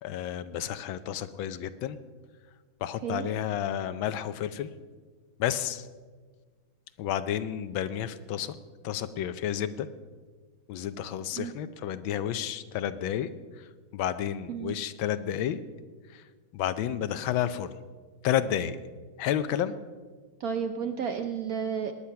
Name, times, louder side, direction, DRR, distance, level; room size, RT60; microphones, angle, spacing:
voice 1, 0.0-2.0 2.8-4.7 5.4-5.9 7.0-8.6 8.8-9.9 10.7-13.3 13.6-15.6 16.1-16.2 16.5-17.7 18.2-18.8 19.2-19.7, left 10 dB, 80° left, 13 dB, 1.5 m, -31 dB
voice 2, 20.4-21.9, right 7 dB, 65° right, 7 dB, 0.9 m, -32 dB
19.5 x 9.9 x 5.7 m, 1.5 s
omnidirectional pair, 2.2 m